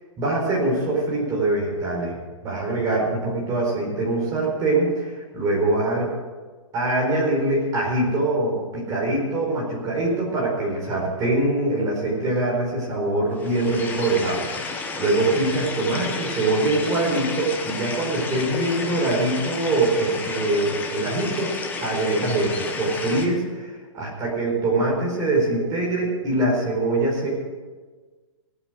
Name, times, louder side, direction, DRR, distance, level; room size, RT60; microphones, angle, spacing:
voice 1, 0.2-2.2 2.4-6.1 6.7-21.5 21.8-27.3, right 2 dB, 20° right, -2 dB, 4.6 m, -23 dB
sound 1, 13.4-23.3, left 4 dB, 10° left, 1.2 m, -31 dB
18.0 x 8.6 x 6.6 m, 1.4 s
hypercardioid pair, 155°, 17 cm